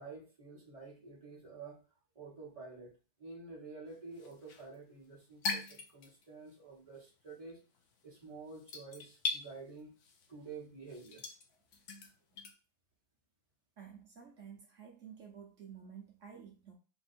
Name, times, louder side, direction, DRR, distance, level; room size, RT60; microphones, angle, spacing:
voice 1, 0.0-1.8 2.1-2.9 3.2-7.6 8.0-9.9 10.3-11.2, right 4 dB, 25° right, -2 dB, 1.1 m, -49 dB
sound 1, 3.9-6.6 6.8-12.5, left 4 dB, 60° left, 0.9 m, -42 dB
voice 2, 13.8-16.7, right 7 dB, 60° right, 1 dB, 1.0 m, -52 dB
3.5 x 2.6 x 4.2 m, 0.35 s
omnidirectional pair, 1.7 m